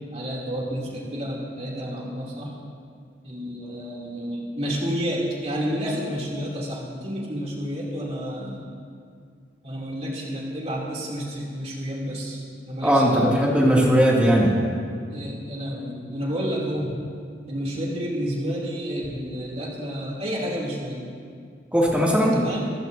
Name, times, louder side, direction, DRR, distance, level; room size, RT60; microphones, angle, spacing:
voice 1, 0.0-2.6 3.2-8.7 9.6-13.3 15.0-17.1 17.5-21.0 22.3-22.6, equal, 35° right, -3 dB, 2.8 m, -30 dB
voice 2, 12.8-14.5 21.7-22.4, equal, 5° right, -4 dB, 2.4 m, -18 dB
26.5 x 14.5 x 2.7 m, 2.1 s
head